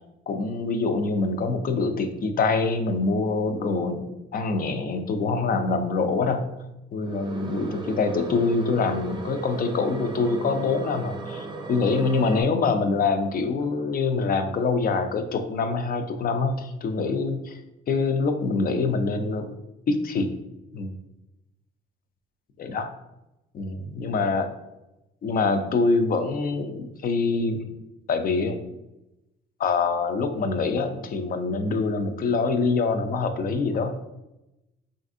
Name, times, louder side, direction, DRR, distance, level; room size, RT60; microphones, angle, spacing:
voice 1, 0.3-6.4 6.9-17.6 17.9-19.5 19.9-20.3 20.7-20.9 22.6-22.9 23.5-24.5 25.2-27.6 28.1-28.6 29.6-33.9, left 4 dB, 45° left, 8 dB, 0.4 m, -25 dB
sound 1, 7.0-12.4, right 3 dB, 25° right, 0.4 m, -36 dB
3.3 x 2.5 x 2.5 m, 0.93 s
cardioid pair, 90°, 20 cm